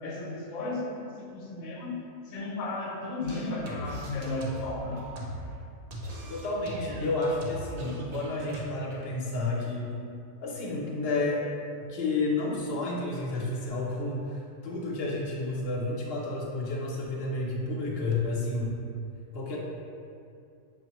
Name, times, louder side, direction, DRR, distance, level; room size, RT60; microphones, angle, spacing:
voice 1, 0.0-2.0 2.2-5.0, left 2 dB, 80° left, -2 dB, 1.0 m, -34 dB
sound 1, 3.2-5.6 5.9-7.8 8.5-8.6, right 1 dB, 75° right, 1.1 m, -40 dB
sound 2, 3.8-5.1 6.0-6.5 7.8-9.1, equal, 55° right, 0.6 m, -46 dB
voice 2, 6.3-9.9 10.4-11.4 11.9-18.8 19.3-19.6, left 2 dB, 55° left, -4 dB, 0.8 m, -31 dB
6.2 x 2.1 x 2.9 m, 2.5 s
omnidirectional pair, 1.5 m